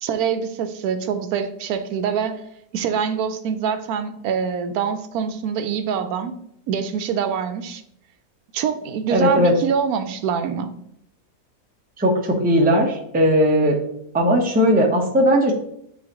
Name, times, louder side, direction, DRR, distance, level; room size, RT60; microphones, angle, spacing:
voice 1, 0.0-2.4 2.7-6.4 6.7-7.8 8.5-10.7, right 7 dB, 70° right, 9 dB, 1.1 m, -24 dB
voice 2, 9.1-9.5 12.0-13.8 14.1-15.5, equal, 10° right, 1 dB, 0.5 m, -18 dB
8.4 x 3.8 x 3.0 m, 0.74 s
omnidirectional pair, 1.7 m